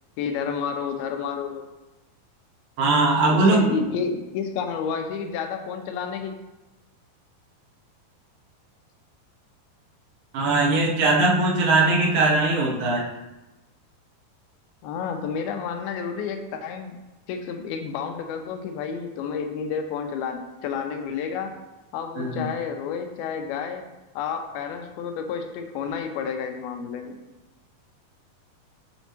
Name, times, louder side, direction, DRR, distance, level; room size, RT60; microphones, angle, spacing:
voice 1, 0.2-1.7 3.3-6.3 14.8-17.0 17.3-21.5 21.9-23.8 24.2-27.2, left 6 dB, 85° left, 5 dB, 2.5 m, -30 dB
voice 2, 2.8-3.7 10.3-13.0 22.2-22.5, right 2 dB, 70° right, -3 dB, 2.4 m, -20 dB
8.1 x 4.3 x 2.9 m, 1.0 s
omnidirectional pair, 4.3 m